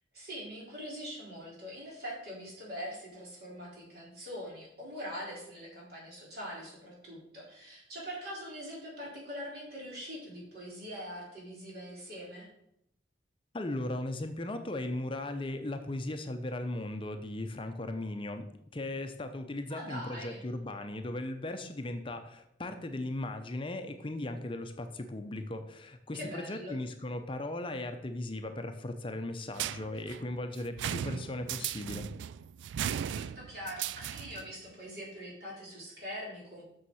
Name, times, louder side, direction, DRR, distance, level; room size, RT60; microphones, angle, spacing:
voice 1, 0.1-12.5 19.7-20.4 26.1-26.8 32.8-36.6, equal, 55° right, -4 dB, 4.0 m, -43 dB
voice 2, 13.5-32.1, left 1 dB, 30° left, 7 dB, 0.6 m, -37 dB
sound 1, 29.6-34.5, right 9 dB, 80° right, 0.3 m, -37 dB
7.1 x 6.4 x 6.3 m, 0.76 s
head